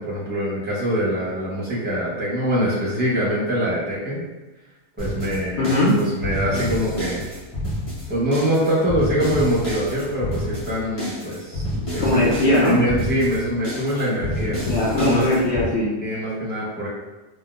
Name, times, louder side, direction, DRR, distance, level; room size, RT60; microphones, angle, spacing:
voice 1, 0.0-4.2 5.0-7.3 8.1-12.2 12.6-15.3 16.0-16.9, equal, 10° right, -7 dB, 0.8 m, -24 dB
sound 1, 5.0-15.7, left 1 dB, 30° left, 1.0 m, -29 dB
voice 2, 5.5-5.9 12.0-12.8 14.4-15.9, left 1 dB, 70° left, -6 dB, 0.9 m, -20 dB
3.6 x 2.2 x 2.4 m, 1.1 s
omnidirectional pair, 1.2 m